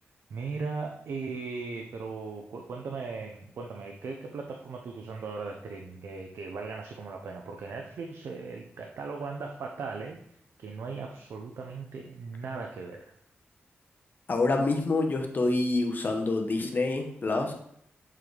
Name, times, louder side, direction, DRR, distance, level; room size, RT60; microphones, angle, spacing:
voice 1, 0.3-10.2 10.6-13.1, right 4 dB, 85° right, 2 dB, 0.6 m, -38 dB
voice 2, 14.3-17.5, left 2 dB, 45° left, 3 dB, 1.0 m, -27 dB
7.5 x 3.9 x 3.3 m, 0.70 s
wide cardioid pair, 100°, 4 cm